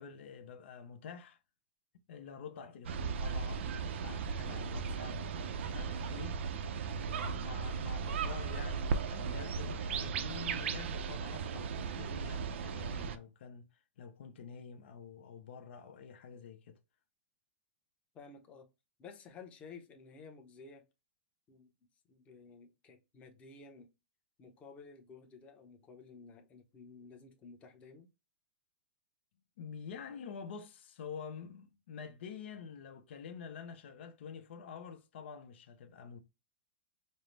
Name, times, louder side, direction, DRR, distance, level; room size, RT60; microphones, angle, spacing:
voice 1, 0.0-1.4 2.1-6.4 7.0-16.8 29.6-36.2, left 6 dB, 75° left, 0.7 m, -48 dB
sound 1, 2.8-13.2, right 5 dB, 80° right, 0.5 m, -36 dB
voice 2, 18.1-18.7 19.0-20.8 21.5-21.7 22.1-23.9 24.4-28.1, left 4 dB, 20° left, 0.8 m, -53 dB
5.4 x 2.0 x 3.2 m
supercardioid pair, 150°, 6 cm